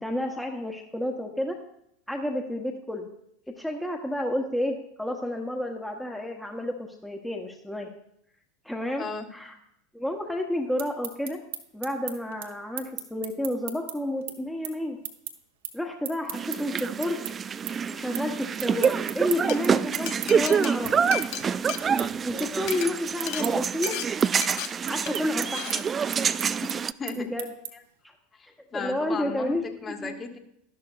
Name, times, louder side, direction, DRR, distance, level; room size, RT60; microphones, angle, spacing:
voice 1, 0.0-1.6 2.1-3.1 3.5-7.9 8.6-9.0 9.3-9.5 9.9-11.4 11.7-15.0 15.7-17.2 17.9-21.2 22.2-24.0 24.9-26.0 27.2-27.5 28.0-28.1 28.7-30.2, left 1 dB, 5° left, 2 dB, 1.1 m, -31 dB
voice 2, 9.0-9.3 22.7-22.8 27.0-27.3 28.3-30.4, left 4 dB, 30° left, 4 dB, 1.5 m, -36 dB
sound 1, 10.6-17.3 17.7-18.3 18.6-28.0, right 11 dB, 70° right, 1.0 m, -37 dB
sound 2, 16.3-26.9, right 6 dB, 25° right, 0.3 m, -27 dB
Glass, 19.3-19.6 20.1-22.3 22.6-22.9 23.3-23.5 23.8-24.1 24.4-24.7 25.1-25.3 25.5-25.8, left 12 dB, 55° left, 0.7 m, -34 dB
12.5 x 11.5 x 2.5 m, 0.74 s
figure-of-eight pair, 80°, 0 cm